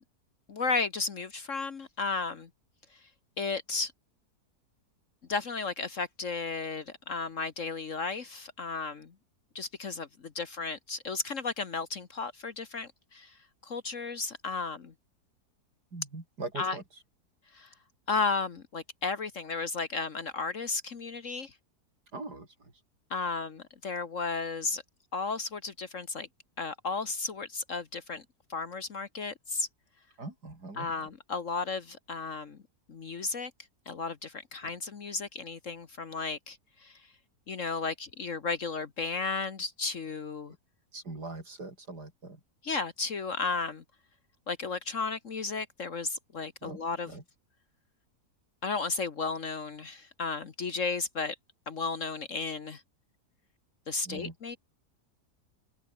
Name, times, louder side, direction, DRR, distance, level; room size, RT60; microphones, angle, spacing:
voice 1, 0.5-2.5 3.4-3.9 5.3-9.1 9.5-13.3 13.6-14.9 16.6-16.7 17.5-17.7 18.1-21.5 23.1-24.8 25.1-26.3 26.6-28.2 28.5-29.7 30.8-32.6 32.9-33.5 33.9-37.0 37.5-40.5 42.6-43.8 44.5-47.1 48.6-51.3 51.7-52.8 53.9-54.6, left 4 dB, 55° left, 1.7 m, -34 dB
voice 2, 15.9-17.0 22.1-22.7 30.2-31.1 40.5-40.6 40.9-42.4 46.6-46.8 47.1-47.2 54.0-54.6, right 3 dB, 90° right, 5.8 m, -42 dB
omnidirectional pair, 1.7 m